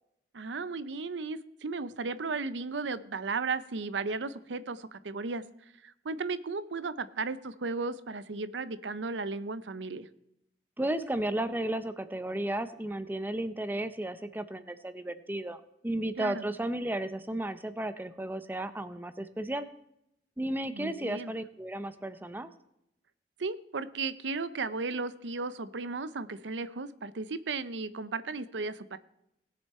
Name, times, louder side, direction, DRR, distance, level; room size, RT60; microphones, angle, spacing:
voice 1, 0.3-5.4 5.8-10.1 16.2-16.4 20.7-21.3 23.4-29.0, right 4 dB, 85° right, 14 dB, 0.6 m, -35 dB
voice 2, 10.8-19.7 20.4-22.5, right 1 dB, 10° right, 11 dB, 0.6 m, -34 dB
19.0 x 7.0 x 4.3 m, 0.80 s
head